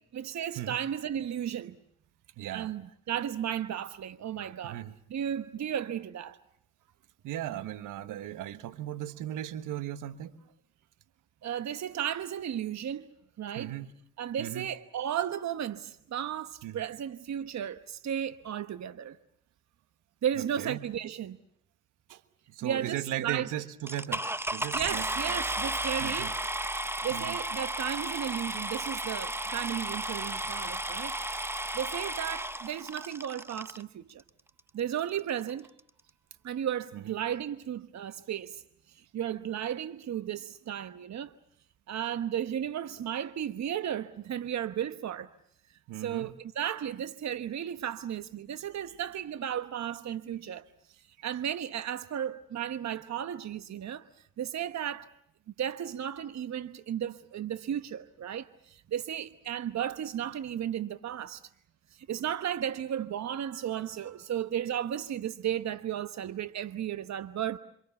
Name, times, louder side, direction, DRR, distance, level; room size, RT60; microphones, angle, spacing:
voice 1, 0.1-1.8 2.5-2.8 3.1-4.8 5.1-6.4 11.4-13.1 13.4-13.7 14.2-19.2 20.2-21.4 22.6-23.5 24.7-26.3 27.0-31.2 31.7-34.2 34.7-35.7 36.4-38.6 38.9-41.3 41.9-45.3 46.0-50.6 51.2-54.1 54.4-55.1 55.6-61.4 61.9-67.6, right 10 dB, 60° right, 1.1 m, -34 dB
voice 2, 2.4-2.7 4.6-4.9 7.2-10.4 13.5-13.9 14.4-14.7 16.6-16.8 20.4-20.9 22.1-22.2 22.5-24.2 24.5-25.1 26.0-26.3 27.1-27.4 36.9-37.2 45.9-46.3, right 13 dB, 85° right, 1.4 m, -37 dB
sound 1, 23.9-33.8 34.6-34.7 35.2-35.3 35.5-35.8, right 1 dB, 10° right, 1.1 m, -34 dB
27.5 x 26.0 x 7.1 m
supercardioid pair, 50°, 31 cm